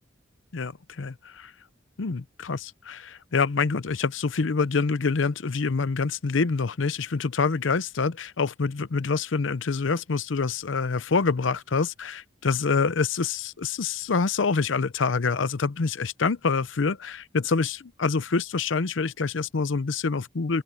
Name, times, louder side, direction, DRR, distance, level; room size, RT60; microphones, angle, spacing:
voice 1, 0.5-1.5 2.0-20.6, left 4 dB, 85° left, 0.7 m, -26 dB
open air
head